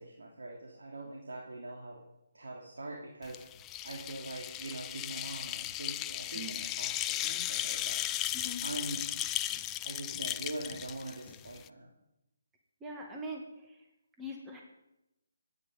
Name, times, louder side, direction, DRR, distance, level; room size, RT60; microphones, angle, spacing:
voice 1, 0.0-2.0 2.3-3.4 3.8-8.0 8.6-9.1 9.8-11.9, right 2 dB, 80° right, -1 dB, 2.9 m, -43 dB
sound 1, 3.3-11.7, left 13 dB, 15° left, 0.4 m, -36 dB
voice 2, 12.8-13.8 14.2-14.6, equal, 10° right, 1 dB, 2.0 m, -42 dB
23.5 x 9.8 x 5.3 m, 0.92 s
hypercardioid pair, 155°, 0 cm